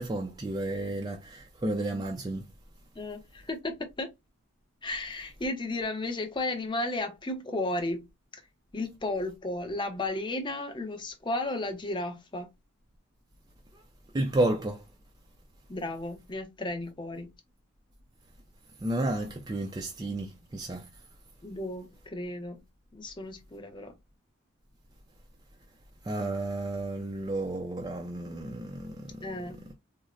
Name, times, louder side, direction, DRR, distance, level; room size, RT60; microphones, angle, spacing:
voice 1, 0.0-2.5 14.1-14.8 18.8-20.9 26.1-29.1, right 1 dB, 20° right, 0.4 m, -31 dB
voice 2, 3.0-4.1 4.8-8.1 8.7-12.5 15.7-17.3 21.4-22.6 22.9-23.9 29.2-29.6, left 2 dB, 25° left, 0.6 m, -34 dB
3.9 x 2.1 x 2.3 m
head